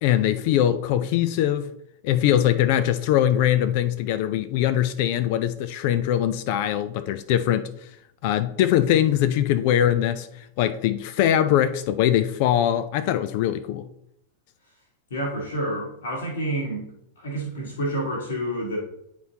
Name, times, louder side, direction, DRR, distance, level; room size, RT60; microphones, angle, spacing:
voice 1, 0.0-1.7 2.0-7.7 8.2-13.9, left 11 dB, 45° left, 0.3 m, -22 dB
voice 2, 15.1-16.9 17.2-18.8, right 1 dB, 65° left, 1.5 m, -28 dB
9.3 x 4.4 x 2.8 m
figure-of-eight pair, 90°, 0 cm